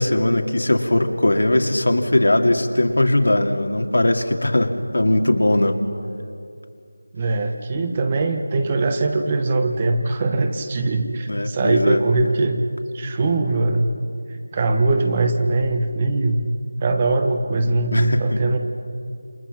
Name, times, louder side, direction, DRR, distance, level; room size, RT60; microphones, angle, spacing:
voice 1, 0.0-5.8 11.1-12.0 17.9-18.4, left 1 dB, 85° left, 4 dB, 2.6 m, -19 dB
voice 2, 7.1-12.7 12.9-13.9 14.5-16.4 16.8-18.6, right 2 dB, 20° right, 6 dB, 1.3 m, -21 dB
28.5 x 27.5 x 5.9 m, 2.4 s
figure-of-eight pair, 175°, 0 cm